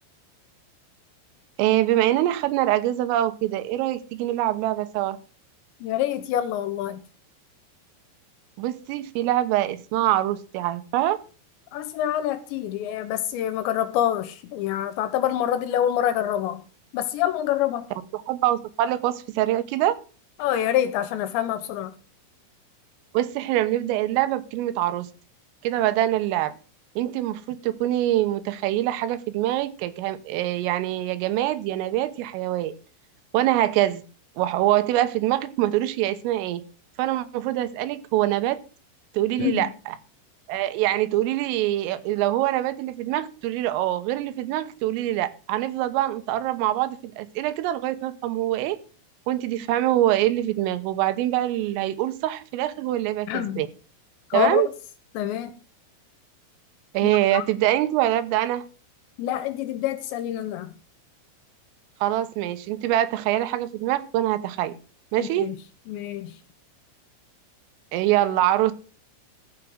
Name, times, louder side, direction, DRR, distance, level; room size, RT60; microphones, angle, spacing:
voice 1, 1.6-5.2 8.6-11.2 18.1-20.0 23.1-25.1 25.6-26.6 27.0-32.8 33.3-34.0 34.4-36.6 37.0-38.6 39.2-40.0 40.5-48.8 49.3-53.7 54.3-54.7 57.0-58.6 62.0-64.7 65.1-65.5 67.9-68.7, right 14 dB, 85° right, 3.6 m, -24 dB
voice 2, 5.8-7.0 11.7-16.6 16.9-17.9 20.4-21.9 39.4-39.7 53.3-53.6 54.3-54.6 55.2-55.5 57.0-57.4 59.2-60.7 65.2-65.6 65.9-66.3, left 11 dB, 80° left, 2.8 m, -26 dB
14.0 x 6.1 x 6.3 m
omnidirectional pair, 5.7 m